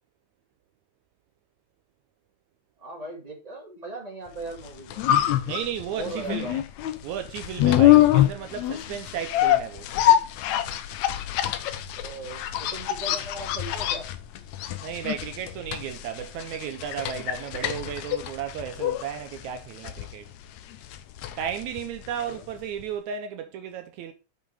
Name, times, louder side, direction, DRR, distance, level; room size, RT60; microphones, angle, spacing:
voice 1, 2.8-5.1 5.9-6.6 11.9-14.1 22.2-22.4, right 2 dB, 15° right, 2.4 m, -38 dB
sound 1, 4.5-22.5 22.8-22.9, left 13 dB, 75° left, 2.0 m, -25 dB
voice 2, 5.5-6.6 7.0-9.9 14.8-20.3 21.4-24.1, right 8 dB, 80° right, 2.0 m, -34 dB
7.5 x 5.6 x 4.8 m
omnidirectional pair, 3.4 m